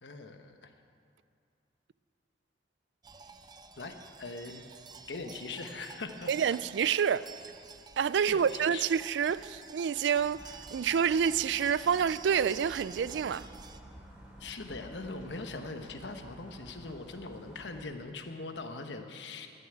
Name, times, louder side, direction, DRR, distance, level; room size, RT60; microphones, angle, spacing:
voice 1, 0.0-0.7 3.8-4.6 5.1-6.3 8.3-8.8 14.4-19.5, left 3 dB, 75° left, 1.0 m, -41 dB
sound 1, 3.0-13.8, right 5 dB, 25° right, 0.5 m, -50 dB
voice 2, 6.3-7.3 8.0-13.5, right 7 dB, 70° right, 0.3 m, -28 dB
sound 2, 10.1-17.8, equal, 5° right, 2.6 m, -52 dB
12.0 x 9.5 x 7.7 m
head